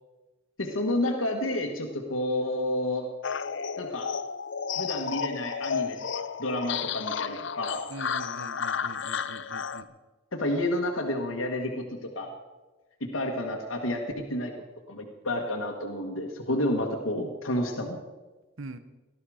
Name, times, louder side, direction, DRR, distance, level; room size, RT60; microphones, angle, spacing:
voice 1, 0.6-3.1 3.8-4.1 4.8-7.8 10.3-12.3 13.0-14.5 14.9-18.0, left 1 dB, 80° left, 1 dB, 1.7 m, -30 dB
sound 1, 3.2-9.8, left 6 dB, 60° left, 0.6 m, -32 dB
voice 2, 7.9-9.9 18.6-18.8, right 2 dB, 80° right, 11 dB, 1.0 m, -42 dB
19.0 x 13.0 x 5.0 m, 1.2 s
head